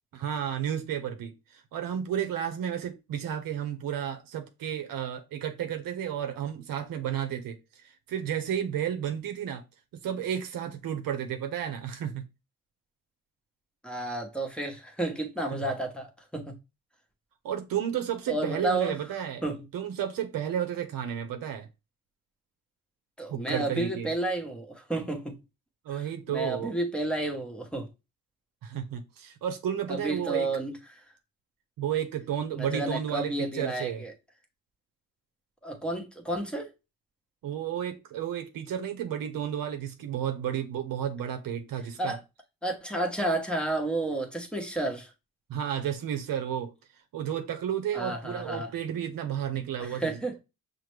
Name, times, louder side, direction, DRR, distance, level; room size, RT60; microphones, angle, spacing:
voice 1, 0.1-9.6 10.0-12.3 15.5-15.6 17.4-19.4 19.7-21.7 23.3-24.1 25.8-26.8 28.6-30.5 31.8-34.1 37.4-42.2 45.5-46.7 47.1-50.4, right 9 dB, 75° right, 0.7 m, -32 dB
voice 2, 13.8-16.6 18.3-19.0 19.4-19.6 23.2-25.3 25.9-27.9 29.9-31.0 32.5-34.1 35.6-36.7 42.0-42.2 42.6-45.1 47.9-48.7 49.8-50.4, right 2 dB, 5° left, 1.0 m, -31 dB
5.7 x 2.1 x 3.2 m
cardioid pair, 80°, 34 cm